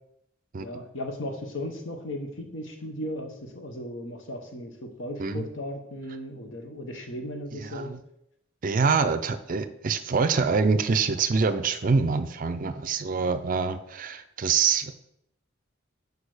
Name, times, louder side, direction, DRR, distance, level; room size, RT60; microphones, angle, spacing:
voice 1, 0.6-7.9, left 1 dB, 70° left, 3 dB, 1.2 m, -36 dB
voice 2, 7.5-8.0 8.6-14.9, right 5 dB, 45° right, 11 dB, 0.4 m, -25 dB
6.3 x 5.1 x 4.9 m, 0.78 s
head